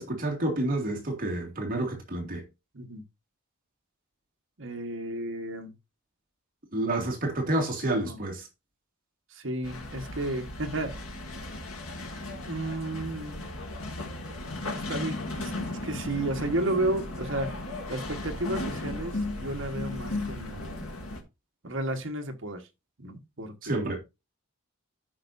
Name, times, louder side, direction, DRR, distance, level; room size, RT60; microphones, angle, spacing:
voice 1, 0.0-2.4 6.7-8.5 23.6-24.0, right 1 dB, 40° right, 2.3 m, -29 dB
voice 2, 4.6-5.7 7.9-8.2 9.3-11.0 12.5-13.5 14.7-17.5 17.9-20.9 21.6-22.7 23.0-24.0, right 1 dB, 60° right, 1.4 m, -33 dB
sound 1, 9.6-21.2, left 2 dB, 85° left, 1.9 m, -36 dB
14.0 x 5.5 x 2.6 m
head